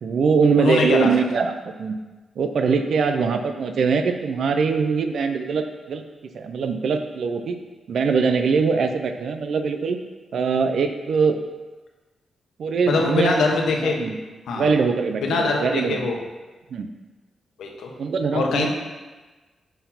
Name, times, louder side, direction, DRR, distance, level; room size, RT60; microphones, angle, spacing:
voice 1, 0.0-2.0 2.4-6.0 6.3-7.6 7.9-10.0 10.3-11.4 12.6-13.4 13.8-14.2 14.5-16.0 16.7-16.9 18.0-18.7, right 5 dB, 60° right, 7 dB, 0.5 m, -22 dB
voice 2, 0.6-1.1 12.9-14.0 14.5-14.7 15.2-16.1 17.6-17.9 18.3-18.7, left 3 dB, 85° left, 1 dB, 1.0 m, -22 dB
5.6 x 4.5 x 5.6 m, 1.3 s
wide cardioid pair, 165°, 0 cm